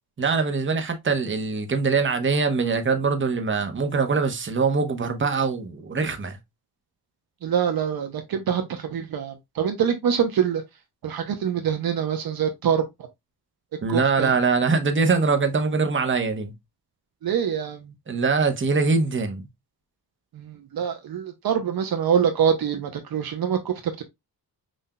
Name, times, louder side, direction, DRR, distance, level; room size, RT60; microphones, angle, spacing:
voice 1, 0.2-6.4 13.8-16.5 18.1-19.4, right 4 dB, 30° right, 0.9 m, -23 dB
voice 2, 7.4-10.6 11.0-12.9 13.9-14.3 17.2-17.9 20.3-24.0, right 8 dB, 60° right, 0.7 m, -25 dB
5.7 x 2.6 x 2.2 m
cardioid pair, 80°, 40 cm